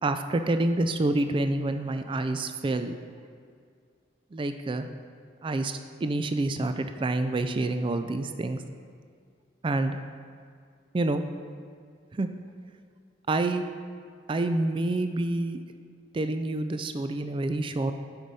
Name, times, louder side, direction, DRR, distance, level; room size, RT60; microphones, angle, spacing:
voice 1, 0.0-3.0 4.3-4.9 5.4-8.6 9.6-10.0 10.9-11.2 12.1-12.3 13.3-13.6 14.3-15.6 16.1-17.9, right 2 dB, 30° right, 8 dB, 0.3 m, -27 dB
9.4 x 5.4 x 4.1 m, 2.2 s
head